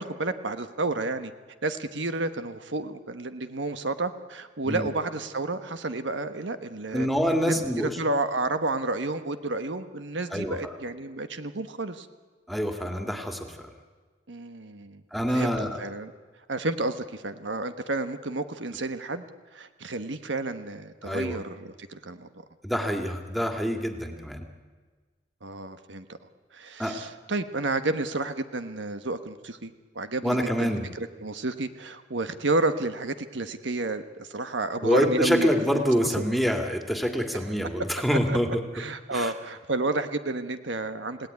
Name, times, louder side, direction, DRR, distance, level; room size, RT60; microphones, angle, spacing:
voice 1, 0.0-1.3 1.6-7.1 7.4-12.1 14.3-15.0 15.3-16.1 16.5-19.2 19.5-22.3 25.4-26.0 26.5-36.2 38.3-38.4 38.7-41.2, right 2 dB, 80° right, 10 dB, 1.3 m, -31 dB
voice 2, 6.9-8.0 10.3-10.7 12.5-13.7 15.1-15.8 21.0-21.4 22.6-24.4 26.8-27.0 30.2-30.9 34.8-38.6 39.1-39.3, equal, ahead, 4 dB, 2.2 m, -26 dB
29.0 x 17.0 x 9.6 m, 1.4 s
head